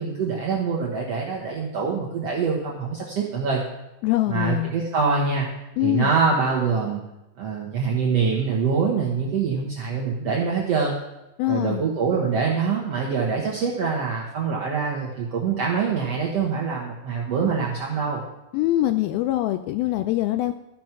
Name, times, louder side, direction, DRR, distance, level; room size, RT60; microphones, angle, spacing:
voice 1, 0.0-3.6 4.3-5.5 5.8-7.0 7.4-10.9 11.5-18.2, right 5 dB, 65° right, -3 dB, 1.6 m, -24 dB
voice 2, 4.0-4.7 5.8-6.1 11.4-11.8 18.5-20.5, left 15 dB, 85° left, 9 dB, 2.2 m, -23 dB
13.5 x 6.2 x 5.9 m, 0.92 s
omnidirectional pair, 4.6 m